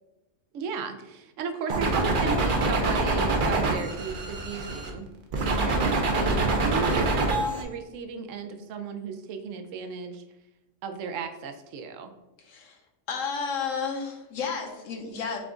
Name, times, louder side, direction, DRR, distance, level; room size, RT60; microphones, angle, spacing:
voice 1, 0.5-5.1 5.3-10.2 10.8-12.1, right 5 dB, 80° right, 6 dB, 0.9 m, -35 dB
sound 1, 1.7-4.9 5.3-7.6, right 3 dB, 50° right, 0.7 m, -25 dB
voice 2, 12.4-12.8 13.1-15.4, left 5 dB, 80° left, 2 dB, 1.2 m, -33 dB
5.8 x 2.4 x 3.6 m, 0.96 s
omnidirectional pair, 1.3 m